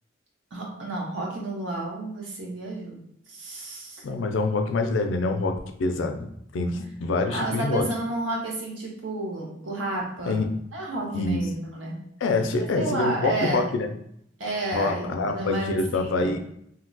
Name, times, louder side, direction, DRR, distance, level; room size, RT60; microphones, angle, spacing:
voice 1, 0.5-3.0 3.3-4.0 7.3-10.4 10.7-12.0 12.8-13.7 14.4-16.4, right 2 dB, 85° right, -2 dB, 1.0 m, -31 dB
voice 2, 4.0-7.9 10.3-10.5 11.1-11.5 12.2-13.9 14.7-16.4, left 3 dB, 80° left, 6 dB, 0.4 m, -26 dB
2.7 x 2.2 x 3.9 m, 0.72 s
head